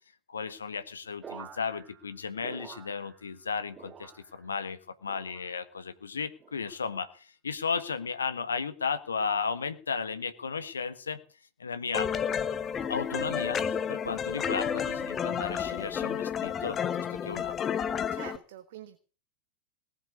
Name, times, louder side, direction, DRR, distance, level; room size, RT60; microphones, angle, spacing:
voice 1, 0.3-11.2 11.6-12.1 12.9-17.6, left 5 dB, 70° left, 12 dB, 1.5 m, -34 dB
sound 1, 1.2-3.5 3.7-4.6 5.1-5.8 6.4-6.9 7.7-8.1 9.0-9.3, right 7 dB, 25° right, 1.9 m, -49 dB
sound 2, 11.9-18.4, left 7 dB, 25° left, 1.0 m, -31 dB
voice 2, 18.1-19.0, right 11 dB, 55° right, 10 dB, 1.3 m, -45 dB
18.5 x 7.8 x 8.3 m, 0.38 s
figure-of-eight pair, 90°, 0 cm